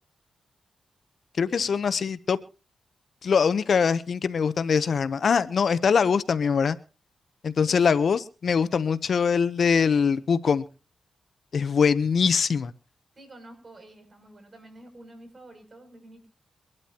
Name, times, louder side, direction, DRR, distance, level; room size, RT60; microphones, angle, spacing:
voice 1, 1.4-2.4 3.2-6.8 7.4-10.6 11.5-12.7, left 6 dB, 65° left, 14 dB, 0.8 m, -23 dB
voice 2, 13.1-16.3, right 1 dB, 45° right, 6 dB, 7.2 m, -49 dB
24.5 x 12.0 x 2.9 m, 0.35 s
cardioid pair, 60°, 0 cm